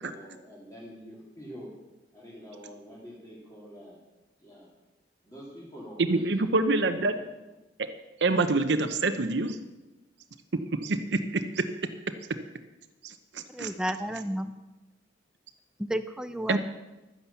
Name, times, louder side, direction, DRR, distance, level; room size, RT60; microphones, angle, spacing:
voice 1, 0.0-1.7 2.1-4.0 4.4-4.7 5.2-7.3, equal, 20° left, -8 dB, 2.9 m, -46 dB
voice 2, 6.0-7.1 8.2-9.6 10.5-11.7 13.0-13.7 16.5-16.6, right 3 dB, 70° right, 8 dB, 0.8 m, -26 dB
voice 3, 13.5-14.5 15.8-16.6, equal, 5° right, 9 dB, 0.6 m, -32 dB
12.0 x 10.0 x 7.1 m, 1.1 s
head